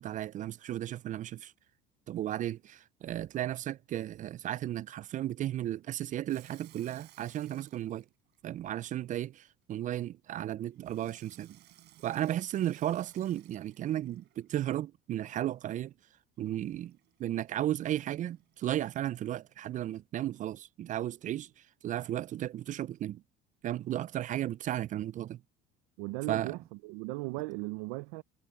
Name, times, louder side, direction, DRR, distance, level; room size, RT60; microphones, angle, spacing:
voice 1, 0.0-1.5 2.1-8.0 8.4-11.6 12.0-15.9 16.4-21.5 21.8-23.2 23.6-25.4 26.3-26.6, right 12 dB, 40° right, 0.4 m, -34 dB
Water tap faucet / Sink (filling or washing), 6.3-9.3 10.8-14.6 16.6-19.1, right 14 dB, 60° right, 4.4 m, -61 dB
voice 2, 26.0-28.2, right 23 dB, 85° right, 0.7 m, -37 dB
supercardioid pair, 100°, 20 cm